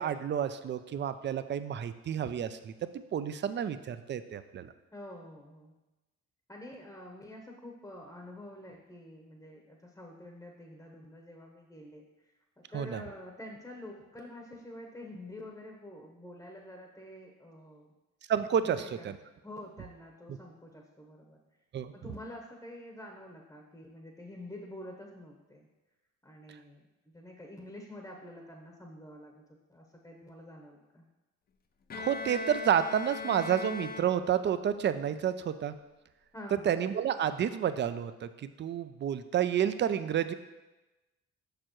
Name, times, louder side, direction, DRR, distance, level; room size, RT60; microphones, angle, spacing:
voice 1, 0.0-4.7 12.7-13.0 18.3-19.1 21.7-21.9 31.9-35.7 36.7-40.3, right 9 dB, 40° right, 12 dB, 0.4 m, -30 dB
voice 2, 4.9-5.8 6.5-12.3 12.7-17.9 18.6-19.1 19.4-21.4 21.9-25.7 26.2-26.8 27.1-29.4 29.7-31.1 36.3-36.9, left 1 dB, 10° left, 0 dB, 0.9 m, -47 dB
Bowed string instrument, 31.9-34.6, left 4 dB, 30° left, 0.5 m, -40 dB
6.7 x 6.2 x 3.0 m, 1.1 s
cardioid pair, 90°, 30 cm